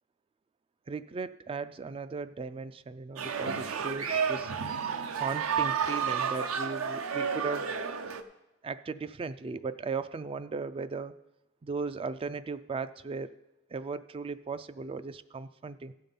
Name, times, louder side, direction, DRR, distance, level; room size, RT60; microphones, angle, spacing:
voice 1, 0.9-4.5 5.1-7.7 8.6-11.1 11.6-13.3 13.7-15.9, right 4 dB, 25° right, 14 dB, 0.3 m, -37 dB
sound 1, 3.2-8.2, right 6 dB, 75° right, 0.6 m, -31 dB
15.0 x 5.7 x 5.3 m, 0.97 s
head